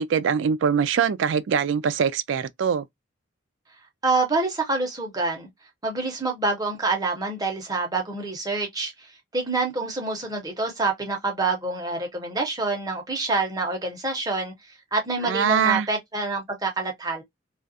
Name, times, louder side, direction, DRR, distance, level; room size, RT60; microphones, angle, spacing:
voice 1, 0.0-2.8 15.2-15.9, right 7 dB, 65° right, 0.3 m, -23 dB
voice 2, 4.0-5.5 5.8-8.9 9.3-14.5 14.9-17.2, right 3 dB, 20° right, 0.8 m, -26 dB
2.4 x 2.2 x 2.5 m
head